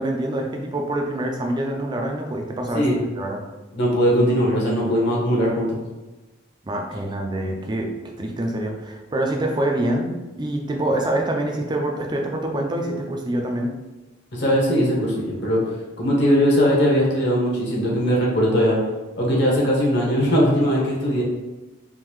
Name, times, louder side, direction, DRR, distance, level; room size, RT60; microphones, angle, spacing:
voice 1, 0.0-3.4 6.6-7.9 8.2-13.7, right 1 dB, 20° right, 1 dB, 0.4 m, -25 dB
voice 2, 3.7-5.8 14.3-15.6 16.0-18.8 19.2-21.2, equal, 55° left, -3 dB, 0.9 m, -20 dB
3.7 x 2.5 x 3.0 m, 1.1 s
head